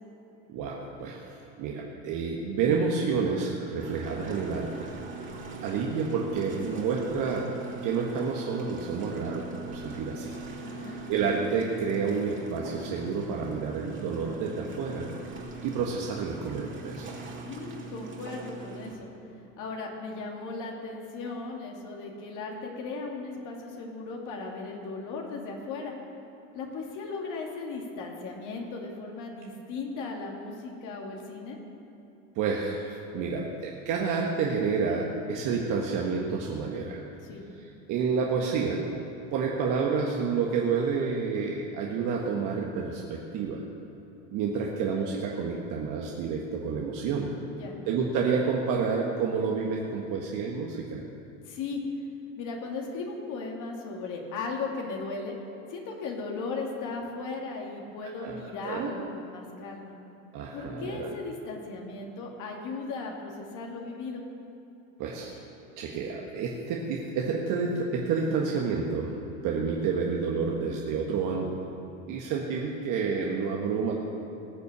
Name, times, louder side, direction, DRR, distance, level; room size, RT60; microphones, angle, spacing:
voice 1, 0.5-4.9 5.6-10.3 10.7-15.1 15.6-17.1 32.3-37.0 37.9-39.0 39.3-43.6 44.3-47.3 47.9-51.0 58.2-58.9 60.3-61.1 65.0-65.4 65.8-69.1 69.4-71.7 72.1-73.9, right 5 dB, 50° right, -1 dB, 1.6 m, -29 dB
sound 1, 3.8-19.0, right 3 dB, 30° right, 2.7 m, -41 dB
voice 2, 10.6-11.0 17.4-19.1 19.6-25.9 26.5-31.6 37.2-37.5 47.5-47.8 51.4-51.8 52.4-55.4 55.7-59.9 60.5-64.2, left 3 dB, 50° left, 0 dB, 2.4 m, -37 dB
19.0 x 6.8 x 6.9 m, 2.9 s
hypercardioid pair, 85°, 40 cm